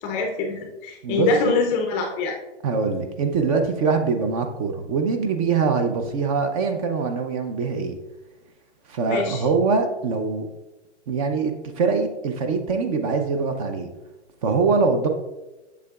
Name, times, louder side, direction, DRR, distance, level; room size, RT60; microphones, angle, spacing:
voice 1, 0.0-2.4 9.1-9.4, left 3 dB, 20° left, 3 dB, 0.5 m, -24 dB
voice 2, 1.0-1.6 2.6-7.9 8.9-10.5 11.1-13.9 14.4-15.1, right 4 dB, 30° right, 6 dB, 0.6 m, -23 dB
8.2 x 6.7 x 2.3 m, 1.0 s
hypercardioid pair, 145°, 34 cm